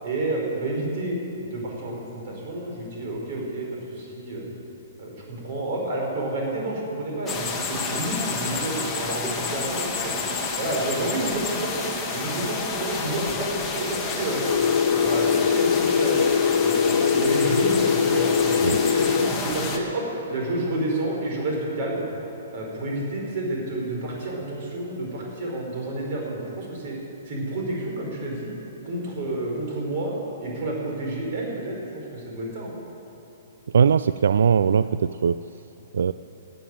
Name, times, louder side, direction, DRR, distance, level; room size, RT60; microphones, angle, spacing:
voice 1, 0.0-4.5 5.0-10.1 10.6-11.7 12.1-14.4 14.9-16.2 16.6-20.0 20.3-22.0 22.5-26.9 27.3-28.5 28.8-30.1 30.4-32.7, right 2 dB, 40° right, -1 dB, 4.4 m, -30 dB
sound 1, 7.3-19.8, left 4 dB, 10° left, 1.2 m, -29 dB
sound 2, 14.4-19.3, left 7 dB, 75° left, 0.4 m, -22 dB
voice 2, 33.7-35.4 35.9-36.1, right 7 dB, 80° right, 13 dB, 0.3 m, -20 dB
14.5 x 9.2 x 9.1 m, 2.9 s
hypercardioid pair, 175°, 0 cm